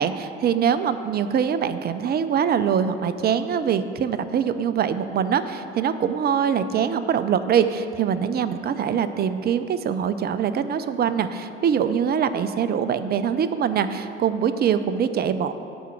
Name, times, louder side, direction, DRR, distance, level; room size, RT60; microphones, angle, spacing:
voice 1, 0.0-15.5, right 8 dB, 30° right, 11 dB, 0.6 m, -23 dB
9.3 x 6.1 x 7.1 m, 2.7 s
figure-of-eight pair, 60°, 35 cm